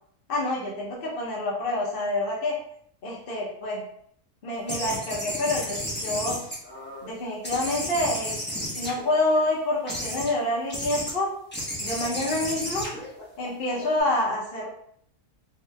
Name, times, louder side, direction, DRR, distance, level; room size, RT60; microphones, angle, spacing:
voice 1, 0.3-2.6 3.0-3.8 4.4-6.4 7.0-8.3 8.7-11.3 11.8-12.9 13.4-14.7, left 1 dB, 50° left, -4 dB, 0.7 m, -27 dB
sound 1, 4.7-7.1 7.4-9.4 9.9-10.3 10.7-11.1 11.5-14.0, equal, 10° left, 0.6 m, -33 dB
2.9 x 2.8 x 3.2 m, 0.67 s
omnidirectional pair, 1.6 m